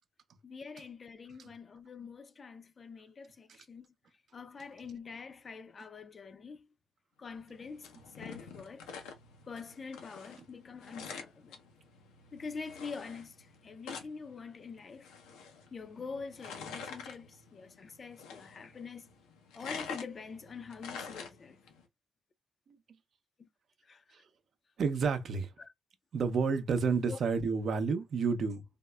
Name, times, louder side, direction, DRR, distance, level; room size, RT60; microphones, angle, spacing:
voice 1, 0.4-3.9 4.3-6.7 7.2-8.9 9.5-11.6 12.3-15.1 15.7-19.1 19.5-21.6 23.4-23.5 23.8-24.0 25.6-25.7 27.1-27.2, left 5 dB, 45° left, 0.4 m, -45 dB
sound 1, 7.4-21.8, left 5 dB, 90° left, 0.6 m, -48 dB
voice 2, 24.8-25.5 26.1-28.6, right 5 dB, 60° right, 0.6 m, -30 dB
3.5 x 2.0 x 2.2 m
supercardioid pair, 65°, 0 cm